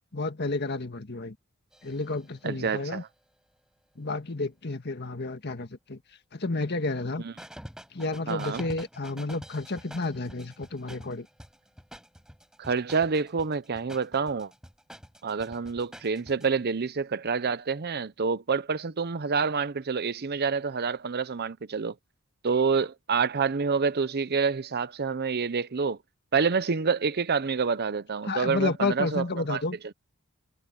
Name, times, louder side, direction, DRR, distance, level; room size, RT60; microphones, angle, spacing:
voice 1, 0.1-1.4 1.8-3.0 4.0-6.0 6.3-7.2 7.9-11.3 28.3-29.8, left 3 dB, 50° left, 1.6 m, -31 dB
sound 1, 1.7-3.2 7.4-16.5, equal, 5° right, 4.8 m, -47 dB
voice 2, 2.4-3.1 7.2-7.3 8.3-8.6 12.6-14.5 15.2-21.9 22.4-26.0 26.3-29.6, right 5 dB, 50° right, 0.7 m, -27 dB
head